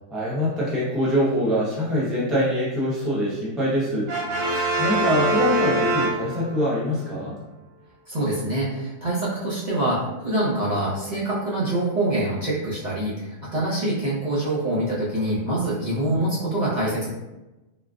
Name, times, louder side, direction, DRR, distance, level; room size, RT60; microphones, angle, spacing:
voice 1, 0.1-7.4, equal, ahead, -8 dB, 0.5 m, -24 dB
Brass instrument, 4.1-6.7, right 2 dB, 75° right, 1.1 m, -23 dB
voice 2, 8.1-17.1, right 1 dB, 40° right, -8 dB, 0.8 m, -25 dB
3.8 x 2.3 x 2.4 m, 1.0 s
omnidirectional pair, 1.4 m